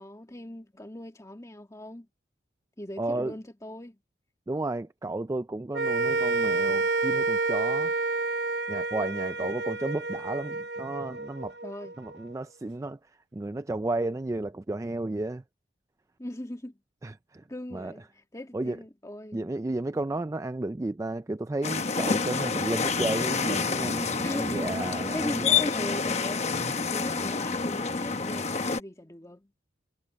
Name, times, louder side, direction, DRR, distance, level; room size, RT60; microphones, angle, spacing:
voice 1, 0.0-2.1 2.8-4.0 11.6-11.9 16.2-16.8 17.5-19.5 24.2-29.5, left 1 dB, 15° left, 1.8 m, -39 dB
voice 2, 3.0-3.3 4.5-7.9 8.7-11.5 12.0-15.4 17.0-17.4 17.7-17.9 18.5-18.8 19.3-25.6 26.5-26.8, right 2 dB, 15° right, 0.3 m, -33 dB
sound 1, 5.7-12.2, right 3 dB, 60° right, 0.8 m, -29 dB
sound 2, 21.6-28.8, left 5 dB, 35° left, 1.0 m, -28 dB
head